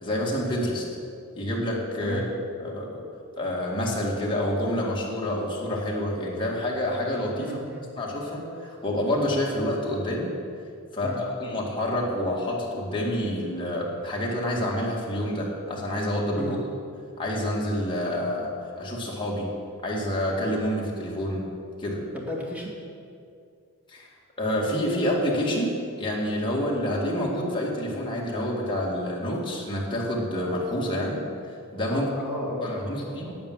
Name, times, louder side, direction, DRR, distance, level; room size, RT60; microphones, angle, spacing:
voice 1, 0.0-0.8 1.3-2.2 2.6-3.0 3.4-7.6 8.0-10.3 10.9-16.6 17.2-18.5 18.8-19.5 19.8-21.4 21.8-22.0 23.9-24.1 24.4-31.2 31.5-32.1 32.6-33.3, left 1 dB, 25° left, -3 dB, 2.1 m, -28 dB
voice 2, 7.4-7.8 11.0-11.5 16.4-16.6 22.1-22.7 31.9-33.3, equal, 5° right, -4 dB, 2.3 m, -34 dB
8.8 x 8.7 x 7.5 m, 2.4 s
head